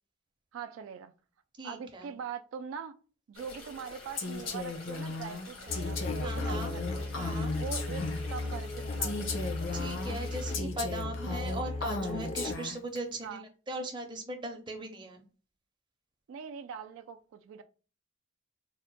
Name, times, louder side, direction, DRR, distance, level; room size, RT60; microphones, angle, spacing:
voice 1, 0.5-1.1 1.6-2.9 3.3-7.1 7.6-9.3 13.2-13.4 16.3-17.6, right 6 dB, 80° right, 0.3 m, -42 dB
voice 2, 1.6-2.1 6.2-6.7 7.1-7.5 9.7-15.2, right 2 dB, 20° right, 0.6 m, -39 dB
sound 1, 3.3-10.6, left 1 dB, 90° left, 1.2 m, -48 dB
Female speech woman speaking, 4.2-8.4 9.0-13.0, left 3 dB, 70° left, 0.7 m, -36 dB
sound 2, 5.7-12.5, left 2 dB, 30° left, 0.4 m, -36 dB
3.5 x 2.1 x 3.9 m
head